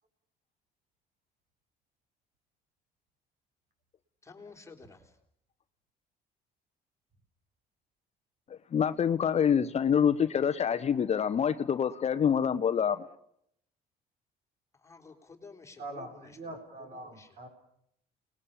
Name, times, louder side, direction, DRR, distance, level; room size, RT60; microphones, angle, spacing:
voice 1, 4.2-5.2 14.8-16.5 16.8-17.4, left 4 dB, 15° left, 2 dB, 3.8 m, -52 dB
voice 2, 8.5-13.1, left 8 dB, 40° left, 12 dB, 0.9 m, -26 dB
voice 3, 15.8-17.5, right 2 dB, 50° right, 4 dB, 6.4 m, -43 dB
29.5 x 20.5 x 7.2 m, 0.72 s
cardioid pair, 110°, 17 cm